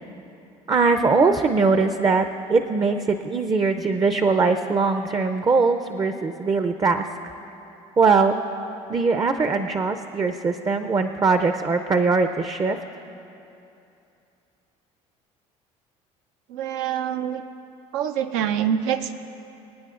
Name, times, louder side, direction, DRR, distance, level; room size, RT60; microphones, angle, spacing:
voice 1, 0.7-7.0 8.0-8.4 8.9-12.8, right 4 dB, 25° right, 8 dB, 0.5 m, -21 dB
voice 2, 16.5-17.4 17.9-19.1, right 9 dB, 80° right, 8 dB, 0.6 m, -25 dB
26.5 x 9.1 x 2.5 m, 2.8 s
supercardioid pair, 90°, 15 cm